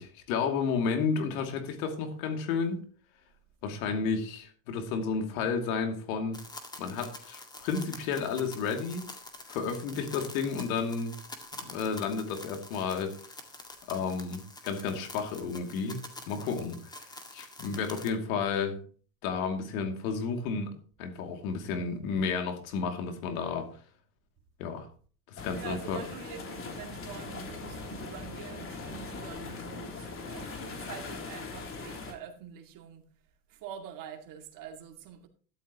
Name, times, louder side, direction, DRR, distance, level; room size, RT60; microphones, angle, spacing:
voice 1, 0.0-2.8 3.6-6.4 6.8-9.1 9.5-11.2 11.6-13.2 13.9-18.8 19.2-20.7 21.0-23.7 24.6-24.9 25.3-26.0, left 5 dB, 65° left, 2.6 m, -32 dB
sound 1, 6.3-18.1, left 2 dB, 10° left, 1.9 m, -47 dB
sound 2, 25.4-32.1, left 4 dB, 30° left, 3.1 m, -41 dB
voice 2, 25.5-33.1 33.5-35.3, right 8 dB, 45° right, 2.2 m, -45 dB
13.0 x 11.5 x 2.9 m
hypercardioid pair, 105°, 44 cm